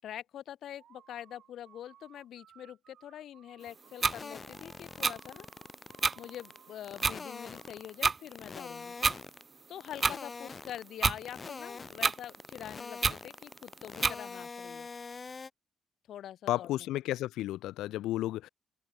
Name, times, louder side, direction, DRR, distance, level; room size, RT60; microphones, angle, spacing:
voice 1, 0.0-5.5 6.2-9.0 9.7-14.9 16.1-16.9, left 11 dB, 70° left, 8.0 m, -45 dB
sound 1, 0.7-8.0, right 10 dB, 70° right, 7.2 m, -61 dB
sound 2, 4.0-6.6 6.8-8.0 8.2-9.4 9.8-10.9 11.2-15.5, left 4 dB, 35° left, 4.2 m, -44 dB
sound 3, 4.0-4.1 5.0-5.1 6.0-6.1 7.0-7.1 8.0-8.2 9.0-9.2 10.0-10.1 11.0-11.2 12.0-12.1 13.0-13.2 14.0-14.1, right 4 dB, 35° right, 0.4 m, -26 dB
voice 2, 16.5-18.5, left 15 dB, 90° left, 1.1 m, -32 dB
cardioid pair, 90°, 0 cm